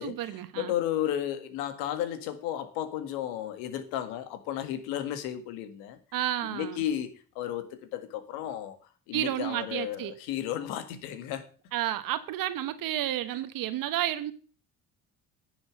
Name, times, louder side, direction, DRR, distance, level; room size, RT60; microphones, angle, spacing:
voice 1, 0.0-0.7 6.1-6.8 9.1-10.1 11.7-14.3, right 13 dB, 65° right, 1.2 m, -31 dB
voice 2, 0.6-6.0 6.5-7.1 7.4-8.8 9.1-11.5, left 11 dB, 80° left, 1.7 m, -33 dB
10.0 x 7.1 x 6.3 m
hypercardioid pair, 65°, 36 cm